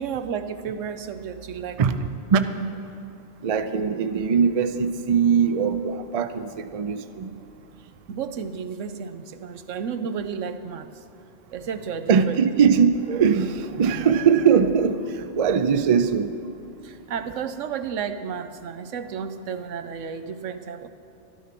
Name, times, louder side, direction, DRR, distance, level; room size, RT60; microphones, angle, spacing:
voice 1, 0.0-1.8 8.1-11.0 11.5-12.4 16.8-20.9, right 7 dB, 85° right, 10 dB, 1.1 m, -32 dB
voice 2, 2.3-2.7 3.4-7.3 12.1-16.3, right 6 dB, 45° right, 10 dB, 0.5 m, -21 dB
12.5 x 12.5 x 5.9 m, 2.7 s
omnidirectional pair, 1.3 m